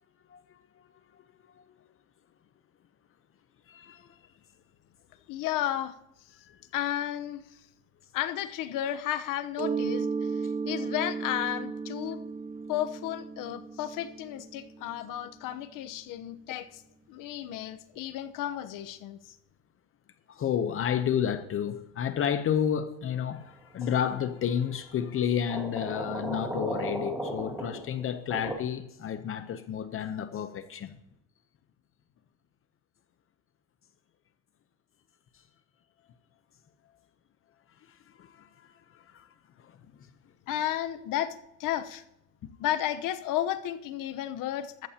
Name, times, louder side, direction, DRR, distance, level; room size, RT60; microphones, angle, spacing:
voice 1, 3.7-4.2 6.4-6.6 20.3-30.9 37.9-39.3 39.6-39.8, left 8 dB, 35° left, 0.8 m, -31 dB
voice 2, 5.3-5.9 6.7-7.4 8.1-12.2 12.7-16.8 17.1-19.2 40.5-42.0 42.6-44.9, left 12 dB, 60° left, 1.0 m, -33 dB
Mallet percussion, 9.6-15.1, right 5 dB, 25° right, 1.0 m, -34 dB
sound 1, 23.8-24.2 25.5-28.5, right 1 dB, 5° right, 2.2 m, -35 dB
14.0 x 14.0 x 2.9 m
cardioid pair, 135°, 37 cm